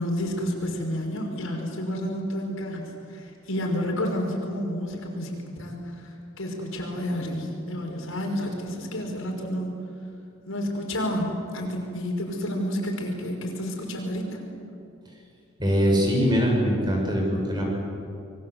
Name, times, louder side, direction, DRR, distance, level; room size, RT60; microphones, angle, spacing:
voice 1, 0.0-9.8 10.4-14.4, equal, 75° left, 1 dB, 5.9 m, -30 dB
voice 2, 15.6-17.7, equal, 20° right, 0 dB, 6.4 m, -22 dB
26.5 x 23.5 x 8.1 m, 2.5 s
head